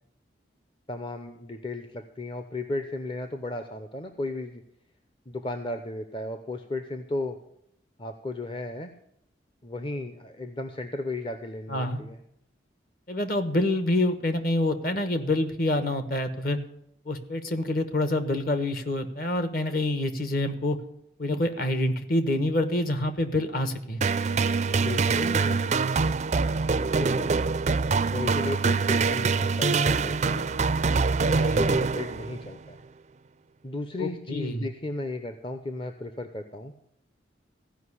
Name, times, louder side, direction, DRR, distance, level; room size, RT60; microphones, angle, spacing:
voice 1, 0.9-4.6 5.3-7.4 8.0-8.9 9.6-12.2 24.8-26.1 26.8-27.4 28.1-30.4 31.3-32.8 33.6-36.7, left 2 dB, 25° left, 7 dB, 0.6 m, -35 dB
voice 2, 11.7-12.0 13.1-16.6 17.0-20.8 21.2-24.0 31.5-31.8 34.0-34.7, left 1 dB, 50° left, 10 dB, 1.2 m, -27 dB
sound 1, 24.0-32.5, right 4 dB, 35° right, 0.4 m, -24 dB
15.5 x 5.4 x 9.7 m, 0.77 s
head